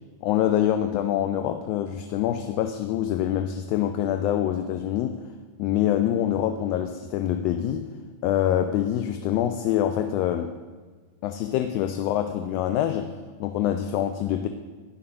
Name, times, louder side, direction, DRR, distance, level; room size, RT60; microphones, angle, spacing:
voice 1, 0.2-5.2 5.6-7.9 8.2-10.5 11.2-13.1 13.4-14.5, left 11 dB, 45° left, 7 dB, 0.3 m, -25 dB
10.0 x 6.4 x 2.2 m, 1.4 s
figure-of-eight pair, 90°, 0 cm